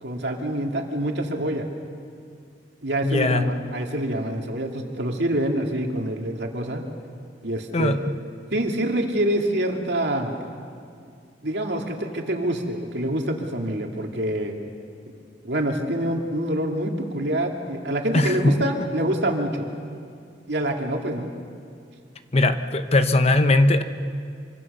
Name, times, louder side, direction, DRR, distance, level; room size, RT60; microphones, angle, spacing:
voice 1, 0.0-1.6 2.8-6.8 7.4-8.1 8.5-10.3 11.4-14.5 15.4-19.7 20.5-21.3, right 1 dB, 65° right, 2 dB, 2.7 m, -26 dB
voice 2, 3.0-3.5 7.7-8.2 18.1-18.6 22.3-23.8, left 2 dB, 35° left, 9 dB, 0.9 m, -20 dB
26.0 x 25.0 x 6.8 m, 2.3 s
head